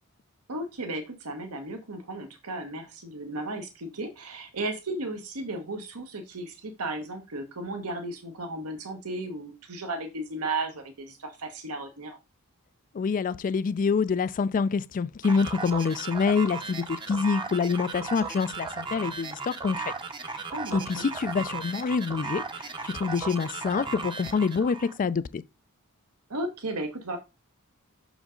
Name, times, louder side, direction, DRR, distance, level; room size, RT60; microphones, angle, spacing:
voice 1, 0.5-12.2 20.5-21.1 26.3-27.2, right 2 dB, 80° right, 1.2 m, -35 dB
voice 2, 12.9-19.9 20.7-25.4, left 5 dB, 35° left, 0.3 m, -26 dB
sound 1, 15.2-25.0, right 4 dB, 20° right, 0.7 m, -36 dB
6.2 x 5.1 x 3.8 m
head